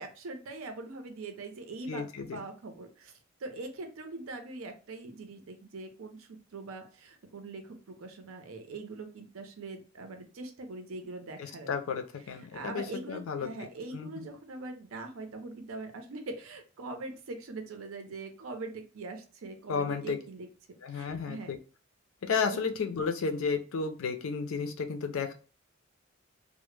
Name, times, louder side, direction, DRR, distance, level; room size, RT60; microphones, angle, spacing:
voice 1, 0.0-3.1 3.4-11.7 12.5-20.5 20.9-21.5 22.5-22.6, right 3 dB, 85° right, 6 dB, 0.5 m, -42 dB
voice 2, 1.9-2.4 11.4-14.3 19.7-20.2 20.8-21.6 22.2-25.3, left 5 dB, 80° left, 6 dB, 0.4 m, -33 dB
2.1 x 2.0 x 3.1 m, 0.36 s
head